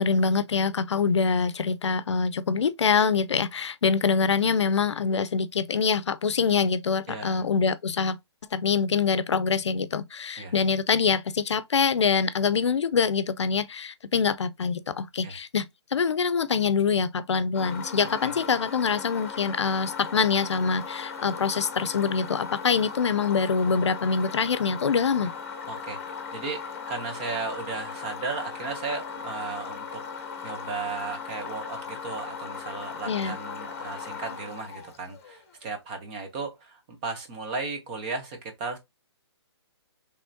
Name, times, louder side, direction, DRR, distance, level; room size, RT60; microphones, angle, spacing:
voice 1, 0.0-8.2 8.5-25.3 33.1-33.4, left 5 dB, 85° left, 0.6 m, -25 dB
voice 2, 7.1-7.4 10.4-10.5 15.2-15.4 18.2-18.4 25.7-30.0 30.4-38.8, right 4 dB, 20° right, 0.8 m, -35 dB
sound 1, 17.5-35.5, left 6 dB, 30° left, 0.9 m, -38 dB
5.5 x 3.3 x 2.7 m
hypercardioid pair, 170°, 14 cm